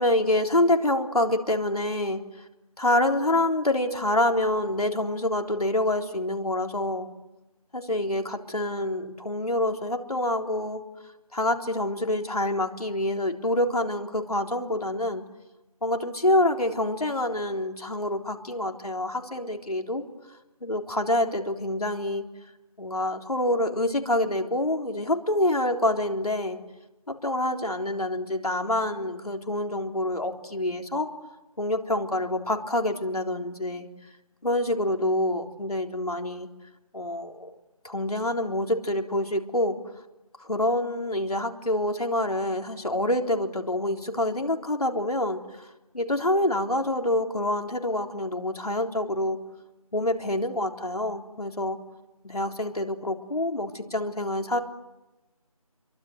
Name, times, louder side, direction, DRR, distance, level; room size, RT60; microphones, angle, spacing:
voice 1, 0.0-2.2 2.8-7.1 7.7-10.8 11.3-15.2 15.8-20.0 20.6-22.2 22.8-26.6 27.1-31.1 31.6-33.9 34.4-36.5 36.9-37.5 37.8-39.8 40.4-45.7 45.9-49.4 49.9-51.8 52.2-54.6, left 1 dB, 80° left, 3 dB, 3.8 m, -26 dB
27.5 x 23.5 x 8.0 m, 1.0 s
figure-of-eight pair, 165°, 19 cm